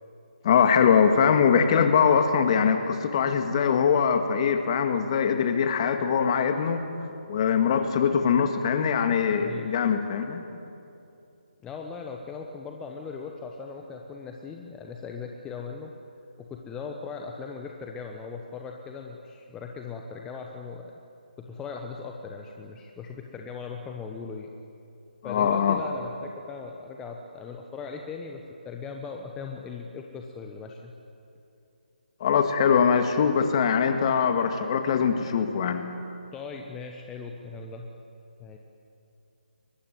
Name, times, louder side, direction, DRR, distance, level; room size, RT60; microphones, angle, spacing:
voice 1, 0.4-6.8 7.3-10.4 25.2-25.8 32.2-35.9, left 7 dB, 35° left, 7 dB, 2.0 m, -22 dB
voice 2, 9.4-9.7 11.6-15.9 16.4-20.9 21.4-24.5 25.2-30.9 36.3-37.9 38.4-38.6, left 5 dB, 10° left, 2 dB, 1.1 m, -39 dB
23.0 x 22.0 x 9.4 m, 2.6 s
figure-of-eight pair, 150°, 5 cm